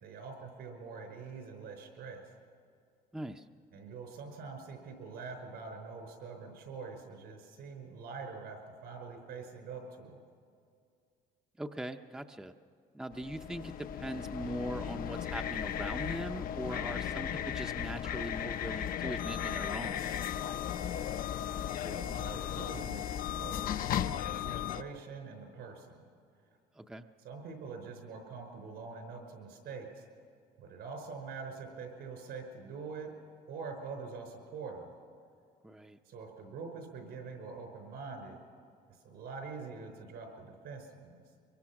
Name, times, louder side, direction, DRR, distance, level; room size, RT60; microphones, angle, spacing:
voice 1, 0.0-2.2 3.7-10.2 21.8-23.7 24.3-26.0 27.2-30.0 30.6-33.1 33.5-34.9 36.0-38.4 39.0-41.2, right 4 dB, 75° right, 4 dB, 5.1 m, -45 dB
voice 2, 3.1-3.4 11.6-12.5 12.9-20.1 26.8-27.0 35.6-36.0, right 1 dB, 5° right, 6 dB, 0.7 m, -41 dB
sound 1, 13.1-24.8, left 9 dB, 60° left, 0.7 m, -36 dB
24.0 x 23.0 x 6.0 m, 2.3 s
cardioid pair, 110°, 17 cm